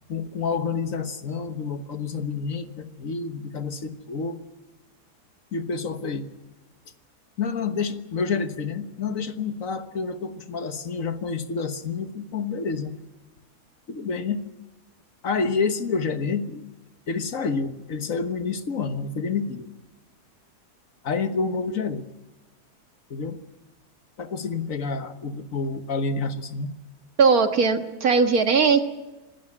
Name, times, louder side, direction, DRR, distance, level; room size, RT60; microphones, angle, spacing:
voice 1, 0.1-4.4 5.5-6.3 7.4-13.0 13.9-14.4 15.2-16.6 17.1-19.7 21.0-22.1 23.1-23.4 24.2-26.7, left 4 dB, 55° left, 9 dB, 1.7 m, -28 dB
voice 2, 27.2-28.8, right 5 dB, 65° right, 7 dB, 1.9 m, -19 dB
26.0 x 13.5 x 10.0 m, 1.1 s
omnidirectional pair, 1.7 m